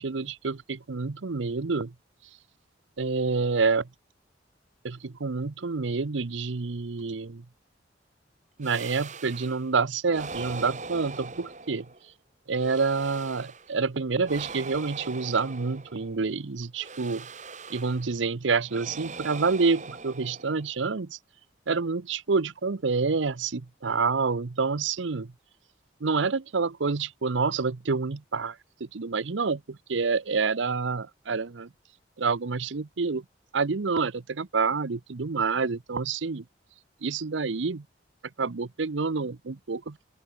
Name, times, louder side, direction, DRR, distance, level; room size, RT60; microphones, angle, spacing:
voice 1, 0.0-1.9 3.0-3.9 4.8-7.4 8.6-11.9 12.5-17.3 17.7-21.2 21.7-25.3 26.0-28.5 28.9-29.6 29.9-31.7 32.2-33.2 33.5-36.4 37.0-37.8 38.4-40.0, right 4 dB, 85° right, 0.8 m, -28 dB
sound 1, 8.6-9.7 10.1-12.1 12.5-13.8 14.2-16.2 16.8-18.2 18.7-20.8, right 4 dB, 40° right, 3.5 m, -41 dB
open air
head